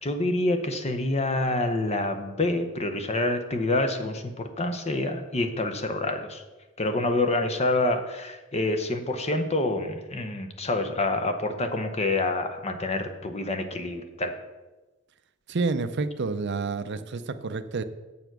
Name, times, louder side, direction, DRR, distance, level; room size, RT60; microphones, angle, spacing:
voice 1, 0.0-6.4 6.8-14.4, left 2 dB, 30° left, 6 dB, 0.8 m, -27 dB
voice 2, 15.5-17.8, right 4 dB, 55° right, 11 dB, 0.6 m, -29 dB
7.9 x 6.9 x 6.0 m, 1.1 s
head